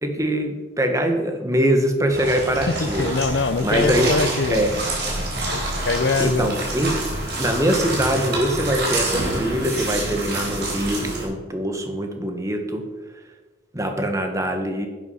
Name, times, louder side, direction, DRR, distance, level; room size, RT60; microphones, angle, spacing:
voice 1, 0.0-4.1 4.5-4.8 6.2-7.0 7.4-12.9 13.7-14.9, right 1 dB, 15° right, 4 dB, 1.3 m, -23 dB
sound 1, 2.1-11.2, right 1 dB, 60° right, 3.9 m, -27 dB
voice 2, 2.7-4.7 5.5-6.5, left 3 dB, 75° left, 13 dB, 0.6 m, -23 dB
10.5 x 8.6 x 5.7 m, 1.3 s
head